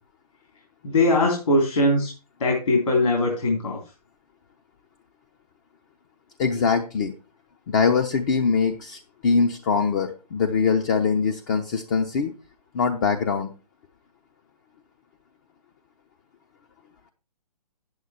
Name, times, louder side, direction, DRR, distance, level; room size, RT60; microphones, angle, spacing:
voice 1, 0.8-2.1 2.4-3.8, left 2 dB, 60° left, -1 dB, 3.5 m, -21 dB
voice 2, 6.4-7.1 7.7-12.3 12.7-13.5, left 5 dB, 30° left, 5 dB, 0.8 m, -22 dB
9.2 x 8.3 x 4.3 m, 0.32 s
figure-of-eight pair, 135°, 21 cm